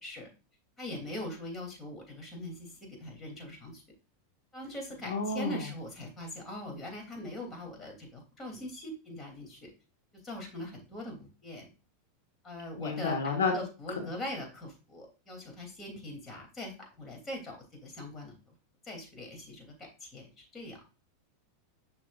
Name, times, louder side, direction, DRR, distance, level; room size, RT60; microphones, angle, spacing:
voice 1, 0.8-3.8 4.5-9.7 10.1-11.7 12.4-18.3 18.8-20.8, left 1 dB, 25° left, 2 dB, 3.0 m, -42 dB
voice 2, 5.0-5.6 12.8-13.5, left 4 dB, 80° left, 2 dB, 1.5 m, -30 dB
6.6 x 5.8 x 2.5 m, 0.32 s
hypercardioid pair, 95°, 0 cm